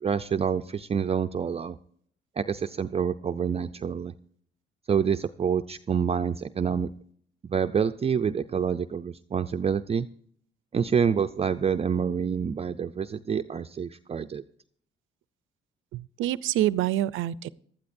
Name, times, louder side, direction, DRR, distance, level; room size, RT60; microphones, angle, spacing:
voice 1, 0.0-1.8 2.4-4.1 4.9-6.9 7.5-10.1 10.7-14.4, right 7 dB, 30° right, 9 dB, 0.4 m, -27 dB
voice 2, 15.9-17.5, right 13 dB, 80° right, 19 dB, 0.5 m, -26 dB
18.0 x 12.5 x 2.6 m, 0.62 s
cardioid pair, 90°, 20 cm